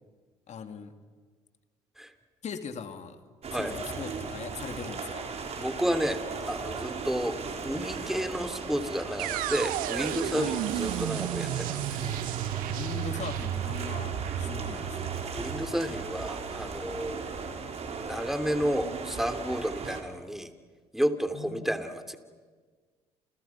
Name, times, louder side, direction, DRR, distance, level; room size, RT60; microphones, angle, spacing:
voice 1, 0.5-0.9 2.4-3.2 3.5-5.3 10.3-10.6 12.7-14.1 14.4-15.2 21.3-21.8, left 6 dB, 50° left, 8 dB, 2.5 m, -39 dB
sound 1, 3.4-20.0, right 5 dB, 45° right, 4.2 m, -37 dB
voice 2, 5.6-12.0 15.3-17.3 17.9-20.5 20.9-22.2, equal, ahead, 8 dB, 2.9 m, -31 dB
sound 2, 9.2-17.1, right 13 dB, 70° right, 1.5 m, -33 dB
29.5 x 29.5 x 5.9 m, 1.5 s
hypercardioid pair, 60°, 15 cm